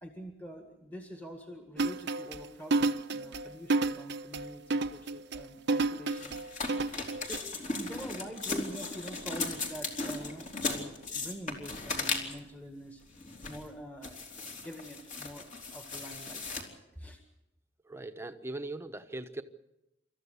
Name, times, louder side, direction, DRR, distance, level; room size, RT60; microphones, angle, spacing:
voice 1, 0.0-6.6 7.2-13.0 13.5-16.5 17.0-17.2, equal, 10° left, 3 dB, 1.8 m, -45 dB
sound 1, 1.8-7.4, right 3 dB, 60° right, 0.8 m, -30 dB
sound 2, 6.1-12.5 13.1-13.7 14.0-16.6, left 3 dB, 40° left, 3.6 m, -37 dB
voice 2, 17.8-19.4, right 2 dB, 15° right, 8 dB, 1.1 m, -40 dB
28.0 x 14.0 x 8.3 m, 0.91 s
head